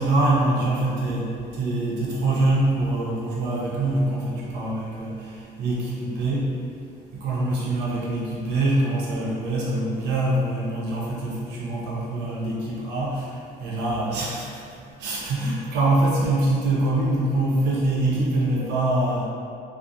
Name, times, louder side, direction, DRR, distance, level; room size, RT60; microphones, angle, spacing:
voice 1, 0.0-5.3 5.6-6.5 7.1-13.3 13.6-14.5 15.0-19.3, right 2 dB, 85° right, -5 dB, 0.6 m, -24 dB
2.6 x 2.0 x 2.3 m, 2.4 s
cardioid pair, 110°, 17 cm